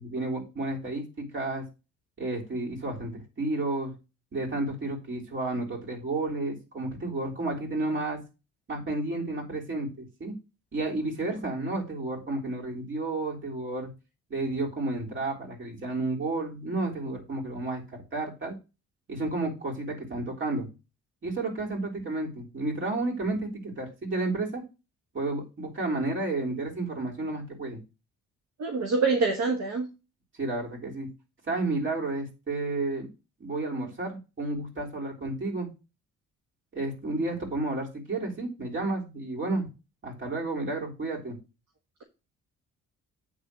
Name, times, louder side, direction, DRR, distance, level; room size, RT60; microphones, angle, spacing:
voice 1, 0.0-1.6 2.2-3.9 4.3-8.2 8.7-10.3 10.7-13.9 14.3-18.6 19.1-20.7 21.2-24.6 25.1-27.8 30.4-31.1 31.5-33.1 33.4-35.7 36.7-39.7 40.0-41.4, right 2 dB, 40° right, 3.6 m, -31 dB
voice 2, 28.6-29.9, right 4 dB, 60° right, 1.4 m, -25 dB
8.6 x 3.7 x 6.6 m
cardioid pair, 90°, 30 cm